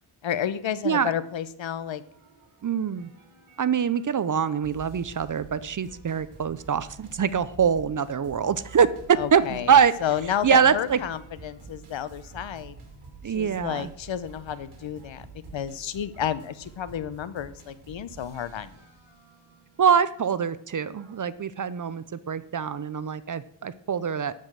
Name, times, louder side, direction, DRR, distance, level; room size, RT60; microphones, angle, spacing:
voice 1, 0.2-2.0 9.2-9.7 10.0-12.8 13.3-15.3 15.5-18.8, left 9 dB, 70° left, 15 dB, 0.8 m, -31 dB
sound 1, 2.0-21.2, right 4 dB, 75° right, 3.1 m, -49 dB
voice 2, 2.6-3.1 3.6-9.9 10.4-11.0 13.2-13.9 19.8-24.3, right 7 dB, 40° right, 16 dB, 0.5 m, -24 dB
12.0 x 5.1 x 7.5 m, 0.68 s
wide cardioid pair, 135°, 49 cm